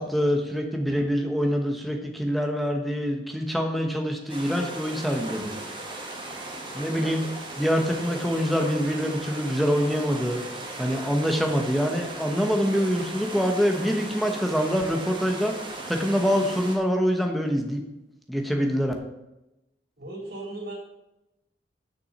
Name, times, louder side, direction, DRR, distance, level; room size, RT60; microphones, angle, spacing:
voice 1, 0.0-5.8 6.7-7.2 7.6-10.4 10.8-17.8 18.3-18.9, equal, ahead, 2 dB, 1.0 m, -25 dB
sound 1, 4.3-16.8, right 2 dB, 30° right, 1.7 m, -37 dB
voice 2, 20.0-20.7, right 2 dB, 60° right, -3 dB, 3.7 m, -36 dB
6.9 x 6.1 x 7.2 m, 0.92 s
head